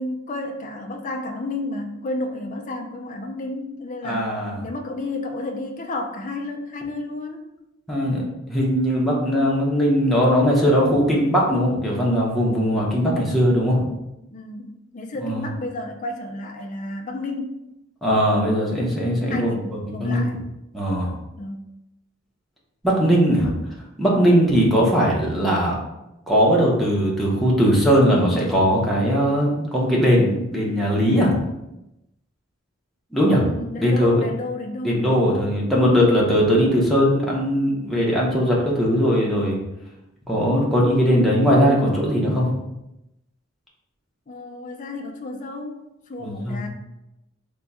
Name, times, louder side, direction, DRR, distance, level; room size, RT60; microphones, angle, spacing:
voice 1, 0.0-4.3 4.6-7.5 14.3-17.6 19.3-20.4 21.4-21.7 33.4-35.1 44.3-46.7, left 2 dB, 40° left, 3 dB, 0.5 m, -32 dB
voice 2, 4.0-4.5 7.9-8.2 8.5-13.9 15.2-15.4 18.0-19.5 19.9-20.2 20.7-21.1 22.8-23.5 24.0-25.8 26.3-31.4 33.1-33.5 33.8-34.2 34.8-39.6 40.3-42.6 46.2-46.7, equal, ahead, -5 dB, 0.8 m, -19 dB
3.5 x 2.2 x 4.0 m, 0.90 s
head